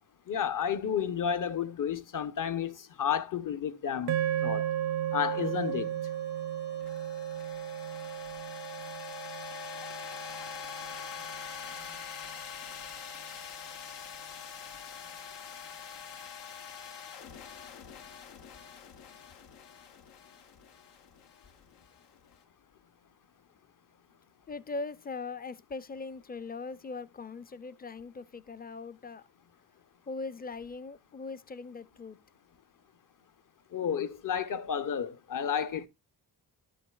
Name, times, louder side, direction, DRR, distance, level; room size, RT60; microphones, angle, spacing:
voice 1, 0.3-4.2 4.4-4.7 5.1-5.9 33.7-35.9, left 8 dB, 50° left, 0.8 m, -31 dB
sound 1, 4.0-22.3, left 7 dB, 85° left, 0.8 m, -45 dB
sound 2, 4.1-12.5, right 11 dB, 75° right, 0.7 m, -35 dB
voice 2, 24.5-29.2 30.1-32.2, left 3 dB, 25° left, 0.5 m, -40 dB
11.0 x 7.8 x 2.3 m
cardioid pair, 60°, 41 cm